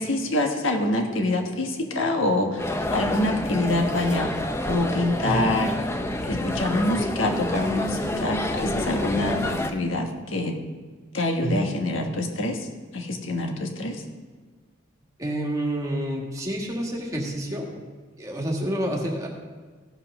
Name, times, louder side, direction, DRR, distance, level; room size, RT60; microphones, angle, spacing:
voice 1, 0.0-5.7 6.3-10.6 11.1-12.7 12.9-14.0, left 2 dB, 75° left, 3 dB, 1.5 m, -26 dB
sound 1, 2.6-9.7, left 1 dB, 15° left, 0.6 m, -28 dB
voice 2, 15.2-17.7 18.2-19.3, right 1 dB, 15° right, -1 dB, 1.7 m, -28 dB
16.0 x 5.8 x 6.0 m, 1.5 s
head